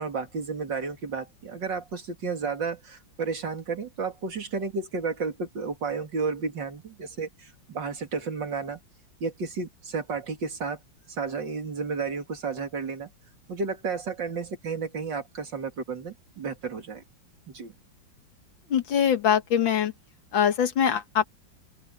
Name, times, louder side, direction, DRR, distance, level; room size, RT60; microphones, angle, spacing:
voice 1, 0.0-8.8 9.2-10.8 11.1-13.1 13.5-17.0 17.5-17.7, right 4 dB, 65° right, 3.3 m, -32 dB
voice 2, 18.7-19.9 20.3-21.3, left 8 dB, 75° left, 2.2 m, -23 dB
open air
omnidirectional pair, 2.1 m